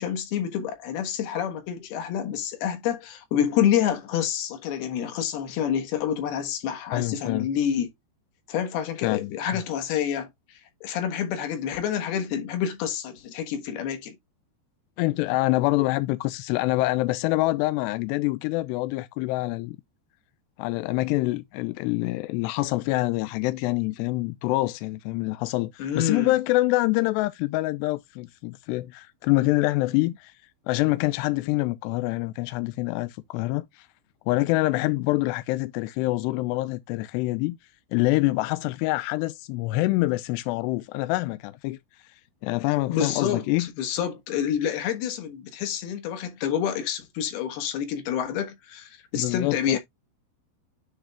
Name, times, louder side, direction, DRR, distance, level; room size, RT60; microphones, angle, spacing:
voice 1, 0.0-7.9 8.5-10.3 10.8-14.2 25.8-26.3 42.9-49.8, left 9 dB, 65° left, 3.0 m, -28 dB
voice 2, 6.9-7.5 9.0-9.6 15.0-19.8 20.6-30.3 30.7-33.9 34.3-37.6 37.9-41.8 42.4-43.7 49.1-49.8, left 19 dB, 85° left, 2.4 m, -26 dB
10.0 x 3.4 x 3.4 m
omnidirectional pair, 5.4 m